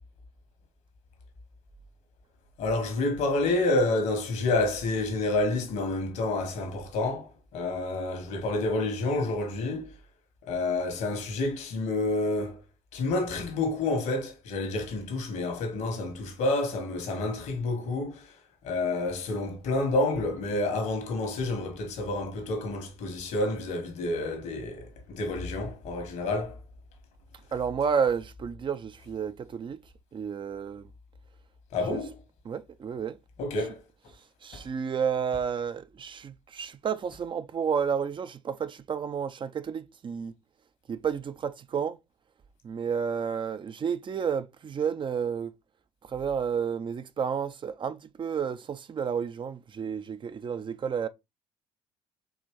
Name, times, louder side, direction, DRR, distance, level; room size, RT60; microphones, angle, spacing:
voice 1, 2.6-9.9 10.5-12.6 12.9-18.3 18.6-26.6 31.7-32.1 33.4-33.8 34.5-34.6, left 2 dB, 70° left, 1.5 m, -29 dB
voice 2, 27.5-29.8 30.1-30.9 31.9-32.0 32.4-33.2 34.4-40.3 40.9-42.0 42.6-45.5 46.0-51.1, right 7 dB, 40° right, 0.5 m, -31 dB
4.7 x 3.0 x 3.1 m
hypercardioid pair, 60°, 13 cm